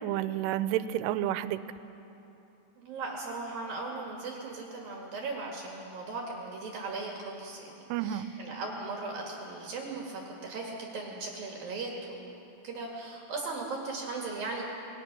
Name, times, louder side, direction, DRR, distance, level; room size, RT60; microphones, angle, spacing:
voice 1, 0.0-1.6 7.9-8.3, right 12 dB, 85° right, 13 dB, 3.1 m, -30 dB
voice 2, 2.8-7.7 8.0-12.3 12.6-14.6, right 3 dB, 55° right, -1 dB, 3.3 m, -38 dB
26.5 x 21.5 x 6.2 m, 3.0 s
omnidirectional pair, 5.5 m